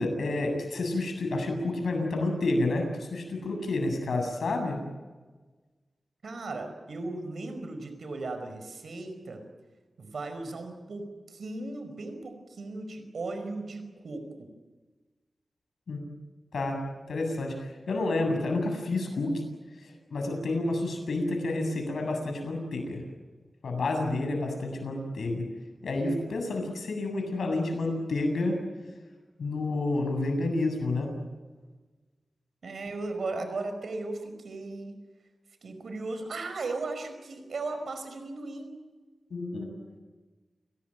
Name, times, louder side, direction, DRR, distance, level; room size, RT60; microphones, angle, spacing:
voice 1, 0.0-4.8 15.9-16.0 16.5-16.8 17.1-19.3 20.1-23.0 23.6-25.4 25.8-28.6 29.4-31.1 39.3-39.7, left 2 dB, 90° left, 4 dB, 7.8 m, -29 dB
voice 2, 6.2-9.4 10.0-14.5 32.6-35.0 35.6-38.7, right 3 dB, 80° right, 7 dB, 5.1 m, -36 dB
29.5 x 18.5 x 9.1 m, 1.3 s
wide cardioid pair, 90°, 0 cm